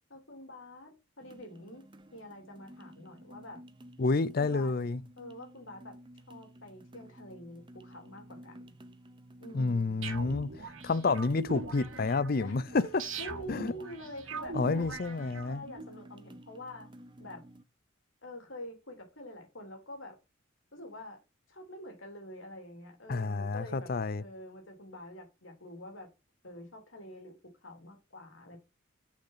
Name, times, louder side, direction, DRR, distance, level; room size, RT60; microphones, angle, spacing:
voice 1, 0.1-0.9 1.2-1.8 2.1-3.6 4.4-4.7 5.2-5.9 6.3-8.7 9.4-10.0 12.4-12.6 13.2-14.9 15.4-16.9 17.2-17.4 18.2-20.2 20.7-21.2 21.5-23.9 24.2-26.1 26.4-27.3 27.6-28.6, left 1 dB, 75° left, 3.6 m, -46 dB
sound 1, 1.2-17.6, right 1 dB, 25° right, 0.8 m, -53 dB
voice 2, 4.0-5.0 9.5-12.8 13.5-13.7 14.5-15.6 23.1-24.2, left 3 dB, 50° left, 0.5 m, -29 dB
sound 2, 10.0-15.8, right 4 dB, 85° right, 1.9 m, -42 dB
6.5 x 6.4 x 5.6 m
head